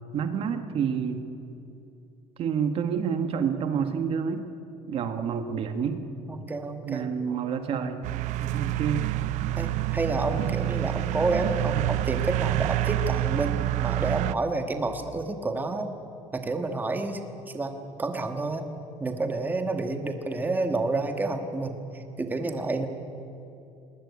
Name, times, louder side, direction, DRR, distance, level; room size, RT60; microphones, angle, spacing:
voice 1, 0.1-1.3 2.4-4.5 4.9-6.0 6.8-8.0 8.5-9.1, right 7 dB, 45° right, 8 dB, 1.4 m, -28 dB
voice 2, 6.3-7.1 8.4-8.6 9.5-15.9 16.3-17.2 17.5-17.7 18.0-18.7 19.0-22.9, right 2 dB, 15° right, 6 dB, 1.5 m, -29 dB
sound 1, 8.0-14.3, right 16 dB, 65° right, 0.6 m, -27 dB
20.0 x 19.5 x 9.6 m, 2.8 s
cardioid pair, 155°, 13 cm